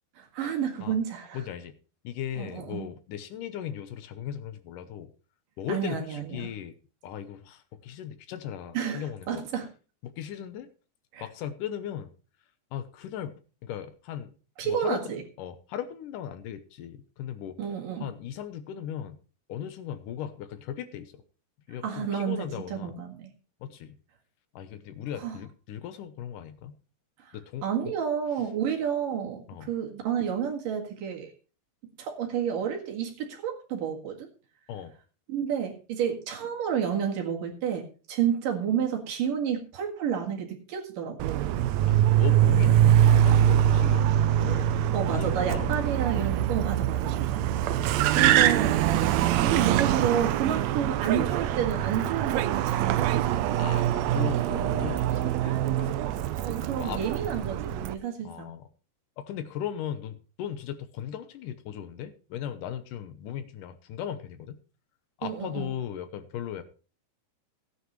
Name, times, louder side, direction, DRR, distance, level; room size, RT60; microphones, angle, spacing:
voice 1, 0.2-1.4 2.4-2.9 5.7-6.5 8.7-9.7 11.1-11.3 14.6-15.2 17.6-18.0 21.8-23.3 25.2-25.4 27.2-27.4 27.6-31.3 32.0-34.3 35.3-41.5 44.9-48.8 49.4-53.6 56.4-58.6 65.2-65.7, right 8 dB, 70° right, 2 dB, 3.4 m, -30 dB
voice 2, 1.3-1.8 2.0-5.1 5.6-6.7 7.0-9.4 10.0-10.7 11.2-12.1 12.7-13.4 13.6-14.3 14.6-17.6 18.0-19.2 19.5-21.2 21.7-22.9 23.6-24.0 24.5-26.8 27.3-27.7 29.5-29.7 34.7-35.0 41.9-44.8 45.1-45.9 47.6-48.5 53.6-55.9 56.8-57.0 58.2-58.7 59.2-64.6 65.2-66.6, left 9 dB, 75° left, 11 dB, 2.3 m, -37 dB
Car, 41.2-57.9, right 11 dB, 90° right, 1.6 m, -24 dB
16.5 x 9.5 x 3.1 m, 0.35 s
omnidirectional pair, 4.0 m